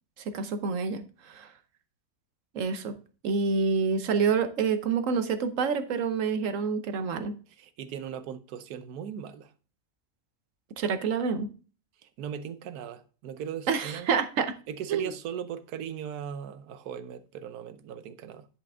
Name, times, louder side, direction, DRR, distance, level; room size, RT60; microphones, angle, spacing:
voice 1, 0.3-1.5 2.5-2.9 3.2-7.3 10.8-11.5 13.7-14.6 14.9-15.1, right 5 dB, 60° right, 1.2 m, -27 dB
voice 2, 7.6-9.5 12.0-14.1 14.7-18.5, right 8 dB, 85° right, 1.3 m, -38 dB
10.5 x 5.2 x 3.5 m
omnidirectional pair, 1.6 m